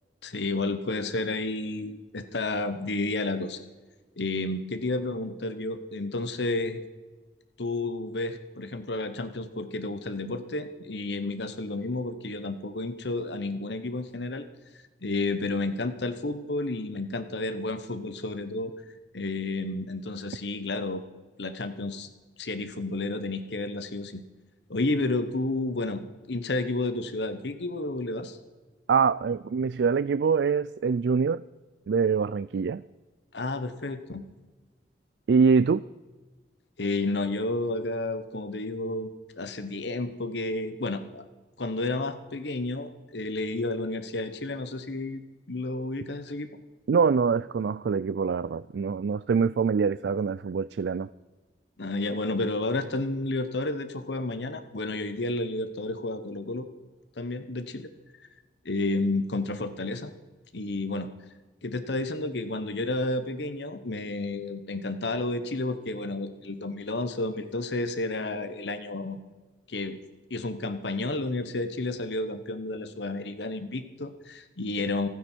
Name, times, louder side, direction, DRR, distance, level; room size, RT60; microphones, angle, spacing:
voice 1, 0.2-3.6 4.2-6.8 7.6-14.4 15.0-18.7 19.1-21.0 21.4-22.1 22.4-24.2 24.7-28.4 33.3-34.3 36.8-39.1 39.4-41.3 41.6-45.2 45.5-46.5 51.8-56.7 57.2-57.9 58.6-60.1 60.5-61.1 61.6-69.2 69.7-70.0 70.3-75.1, left 2 dB, 75° left, 10 dB, 1.1 m, -31 dB
voice 2, 28.9-31.4 31.9-32.8 35.3-35.8 46.9-51.1, right 5 dB, 75° right, 17 dB, 0.4 m, -24 dB
28.0 x 9.5 x 4.5 m, 1.3 s
head